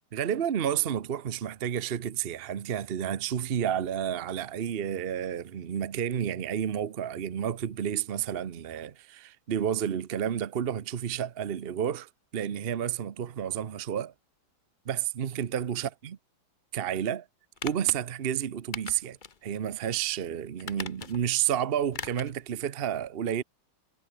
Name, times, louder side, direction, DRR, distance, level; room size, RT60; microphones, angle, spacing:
voice 1, 0.1-14.1 14.9-16.2 16.7-17.3 17.6-23.4, right 9 dB, 65° right, 0.5 m, -31 dB
sound 1, 17.6-18.0 18.7-19.4 19.8-19.9 20.6-21.3 21.9-22.3 22.7-22.8, left 5 dB, 35° left, 0.9 m, -40 dB
omnidirectional pair, 2.3 m